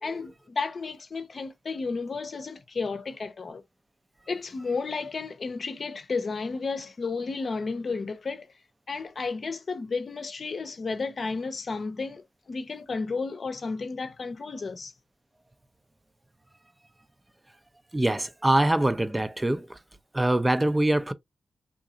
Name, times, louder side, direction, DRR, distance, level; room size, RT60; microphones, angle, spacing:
voice 1, 0.0-3.6 4.3-8.5 8.9-14.9, left 4 dB, 60° left, 0.7 m, -32 dB
voice 2, 17.9-19.8 20.1-21.1, right 1 dB, 20° right, 0.5 m, -24 dB
3.7 x 2.7 x 2.4 m
supercardioid pair, 40°, 0 cm